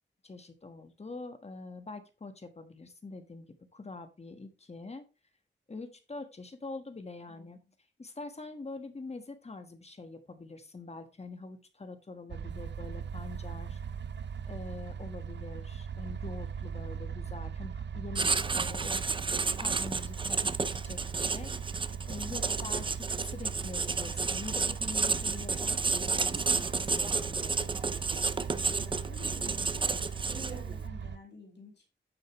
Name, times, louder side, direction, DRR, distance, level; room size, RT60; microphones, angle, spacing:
voice 1, 0.2-5.0 5.7-7.6 8.0-13.8 14.5-19.0 19.6-21.5 22.1-27.7, left 3 dB, 35° left, 8 dB, 1.4 m, -44 dB
sound 1, 12.3-31.2, right 7 dB, 65° right, 0.6 m, -39 dB
Writing, 18.2-30.7, right 4 dB, 25° right, 0.5 m, -31 dB
voice 2, 22.3-22.6 28.7-31.9, left 3 dB, 60° left, 0 dB, 2.5 m, -51 dB
9.3 x 7.1 x 3.1 m, 0.31 s
wide cardioid pair, 115°, 19 cm